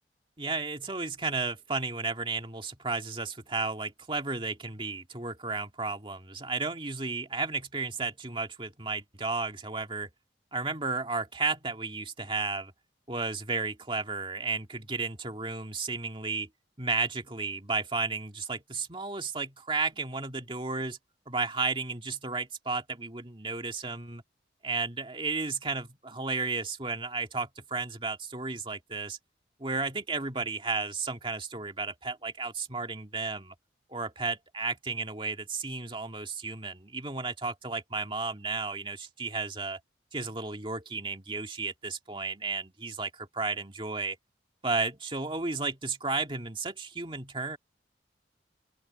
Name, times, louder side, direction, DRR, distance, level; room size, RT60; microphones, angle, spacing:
voice 1, 0.4-10.1 10.5-12.7 13.1-16.5 16.8-21.0 21.3-24.2 24.6-29.2 29.6-33.5 33.9-39.8 40.1-44.2 44.6-47.6, right 4 dB, 30° right, 2.1 m, -33 dB
open air
head